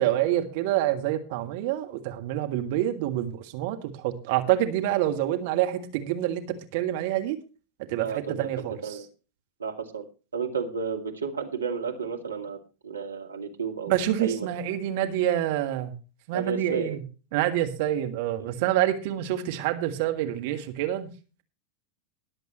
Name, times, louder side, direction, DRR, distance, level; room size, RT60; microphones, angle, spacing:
voice 1, 0.0-6.4 6.7-7.4 7.9-9.0 13.9-16.0 16.3-17.0 17.3-21.1, right 12 dB, 50° right, 6 dB, 1.7 m, -27 dB
voice 2, 8.0-8.5 8.8-9.1 9.6-10.0 10.3-12.6 12.8-13.9 14.2-14.5 16.3-17.0 18.4-18.5, right 5 dB, 75° right, 4 dB, 2.2 m, -32 dB
20.5 x 7.8 x 3.1 m, 0.33 s
figure-of-eight pair, 90°, 0 cm